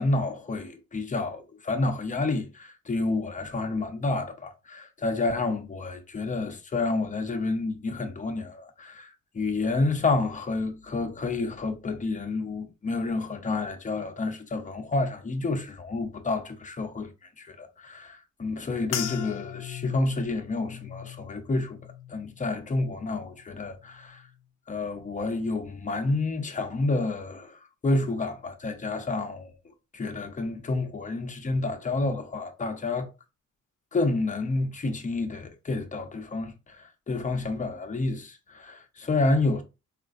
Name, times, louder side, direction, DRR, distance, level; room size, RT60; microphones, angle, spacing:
voice 1, 0.0-17.1 17.4-21.8 22.1-24.3 24.7-29.6 29.9-33.1 33.9-39.6, left 3 dB, 25° left, 0.7 m, -29 dB
sound 1, 18.9-23.5 23.8-24.4 25.0-25.3, left 11 dB, 85° left, 0.5 m, -39 dB
3.7 x 2.5 x 2.5 m
cardioid pair, 90°, 30 cm